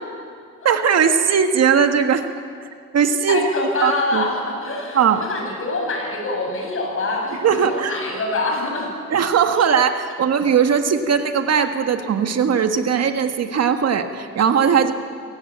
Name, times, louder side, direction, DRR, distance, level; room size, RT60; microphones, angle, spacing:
voice 1, 0.6-2.3 2.9-3.5 3.8-4.3 4.9-5.2 7.4-8.0 9.1-14.9, right 7 dB, 55° right, 7 dB, 1.6 m, -19 dB
voice 2, 3.3-8.9, left 2 dB, 45° left, 0 dB, 7.8 m, -25 dB
26.5 x 16.5 x 8.7 m, 2.2 s
cardioid pair, 90°, 30 cm